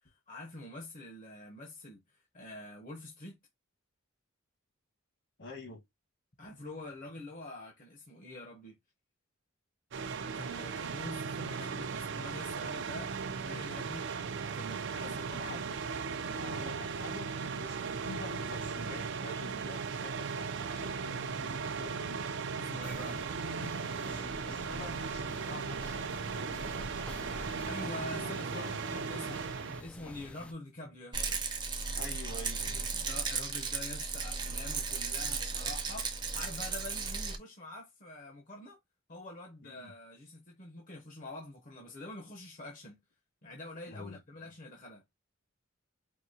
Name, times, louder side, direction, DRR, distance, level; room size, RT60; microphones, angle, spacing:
voice 1, 0.0-3.4 6.4-8.8 10.2-14.1 14.5-15.8 22.6-23.2 27.7-29.5 29.8-31.4 32.0-32.2 32.7-38.8 39.1-43.0 43.4-45.0, left 2 dB, 40° left, 0.9 m, -46 dB
voice 2, 5.4-5.8 15.0-15.7 16.3-22.2 24.0-28.8 31.9-33.1 39.6-39.9 43.9-44.5, left 2 dB, 60° left, 1.6 m, -48 dB
sound 1, 9.9-29.8, right 5 dB, 60° right, 0.5 m, -37 dB
sound 2, 22.8-30.5, left 1 dB, 5° left, 0.3 m, -47 dB
Rattle, 31.1-37.4, right 4 dB, 20° right, 0.7 m, -35 dB
4.7 x 2.8 x 2.8 m
head